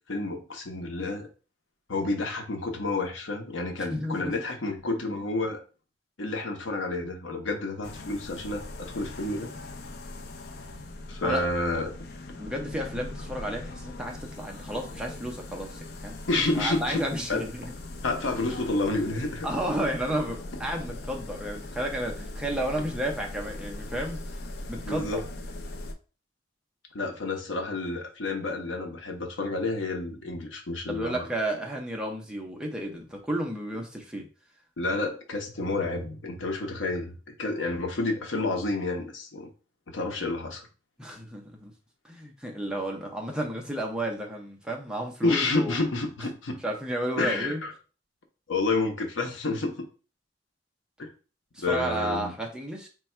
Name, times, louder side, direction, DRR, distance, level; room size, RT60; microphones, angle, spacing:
voice 1, 0.1-1.3 1.9-5.6 6.2-9.5 11.1-11.9 16.3-17.0 17.3-17.4 18.0-19.5 24.8-25.2 26.9-31.3 34.8-39.5 39.9-40.7 45.2-46.6 47.2-47.7 48.5-49.9 51.0-51.1 51.6-52.3, left 2 dB, 90° left, 4 dB, 0.8 m, -29 dB
voice 2, 3.9-4.3 11.2-11.4 12.4-16.2 16.6-17.7 18.5-18.8 19.4-24.2 24.7-25.2 30.9-34.3 41.0-41.7 42.0-45.8 46.2-46.3 46.6-47.6 51.5-52.9, right 1 dB, 5° right, 0 dB, 0.6 m, -32 dB
sound 1, 7.8-25.9, left 2 dB, 60° left, 0.5 m, -40 dB
3.3 x 2.3 x 4.3 m, 0.35 s
head